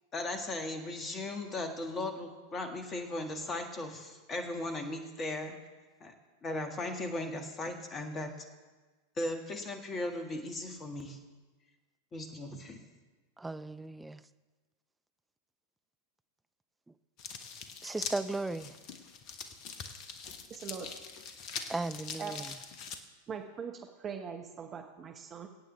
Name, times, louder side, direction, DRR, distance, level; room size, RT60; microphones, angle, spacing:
voice 1, 0.1-5.5 6.0-6.1 6.4-8.3 9.2-11.2 12.1-12.8, left 2 dB, 25° left, 5 dB, 1.8 m, -37 dB
voice 2, 13.4-14.2 17.8-18.7 21.7-22.4, right 2 dB, 10° right, 12 dB, 0.4 m, -36 dB
sound 1, 17.2-23.0, left 6 dB, 40° left, 1.0 m, -43 dB
voice 3, 20.5-20.9 22.2-22.3 23.3-25.5, right 7 dB, 25° right, 4 dB, 1.0 m, -41 dB
22.5 x 9.0 x 3.4 m, 1.3 s
figure-of-eight pair, 90°, 0 cm